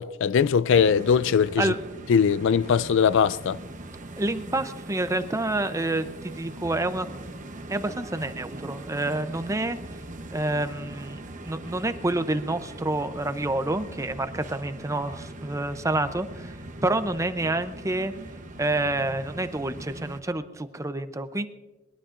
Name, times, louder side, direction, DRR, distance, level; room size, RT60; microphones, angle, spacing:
voice 1, 0.0-1.7 2.1-3.6, left 6 dB, 65° left, 0.4 m, -21 dB
sound 1, 0.7-20.2, right 1 dB, 40° right, 1.0 m, -41 dB
voice 2, 4.2-7.1 7.7-9.8 10.3-16.5 16.8-18.1 18.6-21.5, right 2 dB, 15° right, 0.6 m, -28 dB
22.5 x 21.0 x 2.5 m
head